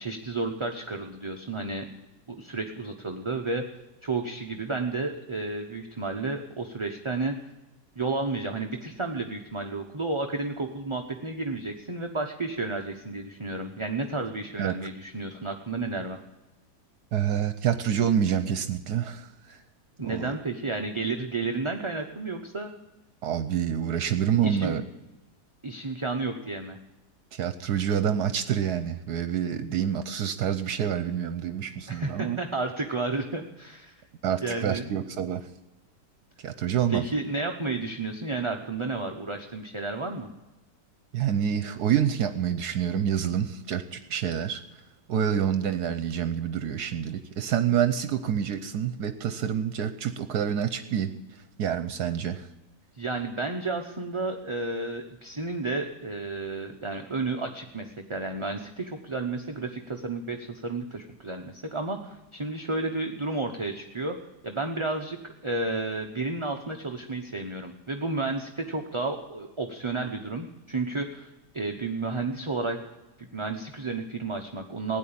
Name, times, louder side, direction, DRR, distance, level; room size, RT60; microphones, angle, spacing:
voice 1, 0.0-1.9 2.3-3.7 4.0-7.3 8.0-16.2 20.0-22.7 24.4-24.7 25.6-26.8 31.9-33.9 34.4-34.9 36.9-40.3 52.9-64.2 64.4-72.8 73.2-75.0, right 3 dB, 25° right, 3 dB, 0.7 m, -32 dB
voice 2, 17.1-19.6 20.0-20.3 23.2-24.8 27.3-32.4 34.2-35.5 36.4-37.0 41.1-44.6 45.1-51.1 51.6-52.5, right 9 dB, 70° right, 10 dB, 1.3 m, -27 dB
16.5 x 9.7 x 8.7 m, 1.1 s
omnidirectional pair, 1.8 m